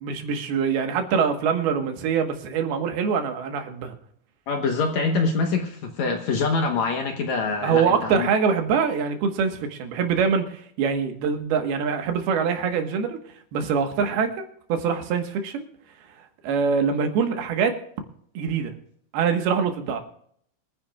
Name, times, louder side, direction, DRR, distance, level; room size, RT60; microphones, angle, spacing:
voice 1, 0.0-3.9 7.6-13.2 13.5-15.7 16.4-17.8 18.3-18.7 19.1-20.0, right 6 dB, 85° right, 5 dB, 3.3 m, -24 dB
voice 2, 4.5-8.3, left 4 dB, 65° left, 3 dB, 2.0 m, -25 dB
25.0 x 10.0 x 2.4 m, 0.65 s
omnidirectional pair, 4.4 m